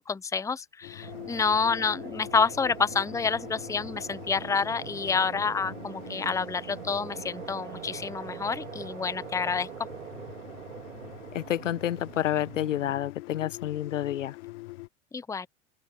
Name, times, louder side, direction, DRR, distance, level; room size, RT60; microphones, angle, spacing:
voice 1, 0.0-9.7 15.1-15.5, left 5 dB, 10° left, 0.7 m, -28 dB
sound 1, 0.8-14.9, left 19 dB, 65° left, 2.0 m, -45 dB
sound 2, 1.0-13.0, right 8 dB, 85° right, 3.4 m, -43 dB
voice 2, 11.3-14.3, left 12 dB, 85° left, 1.1 m, -29 dB
open air
hypercardioid pair, 90°, 37 cm